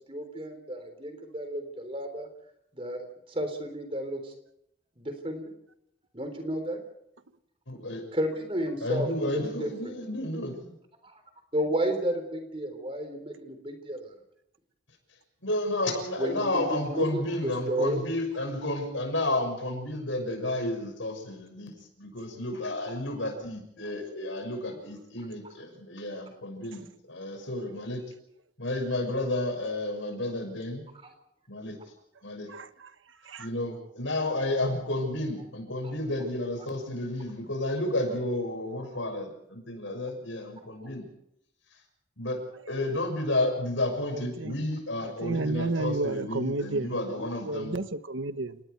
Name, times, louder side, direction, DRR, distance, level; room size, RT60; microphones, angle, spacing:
voice 1, 0.1-2.3 2.7-4.3 5.0-5.5 6.1-6.8 8.1-9.9 11.5-14.1 16.2-18.0 23.8-23.9 35.8-35.9, right 1 dB, 30° right, 7 dB, 3.8 m, -32 dB
voice 2, 7.7-8.0 8.8-10.7 15.4-21.7 22.0-28.0 28.6-30.8 31.5-31.7 32.2-32.5 33.4-41.0 42.2-42.4 42.7-47.8, left 1 dB, 90° left, 4 dB, 6.4 m, -31 dB
voice 3, 32.5-32.9 33.2-33.5 44.1-44.5 45.0-48.6, right 2 dB, 90° right, 11 dB, 1.2 m, -32 dB
29.5 x 19.0 x 4.7 m, 0.78 s
head